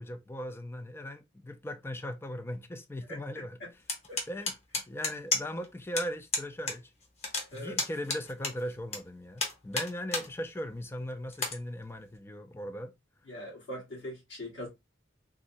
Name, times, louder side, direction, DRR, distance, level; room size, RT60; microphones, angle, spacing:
voice 1, 0.0-3.6 4.3-4.5 4.9-6.9 7.5-12.9, equal, 15° left, 0.4 m, -38 dB
voice 2, 3.1-3.7 4.1-4.2 7.5-7.7 13.3-14.7, left 1 dB, 75° left, 1.6 m, -42 dB
sound 1, 3.9-5.7 6.0-6.1 6.3-6.8 7.0-9.0 9.4-10.3 10.7-10.8 11.3-11.6, left 3 dB, 35° left, 0.8 m, -31 dB
3.6 x 2.1 x 2.6 m
head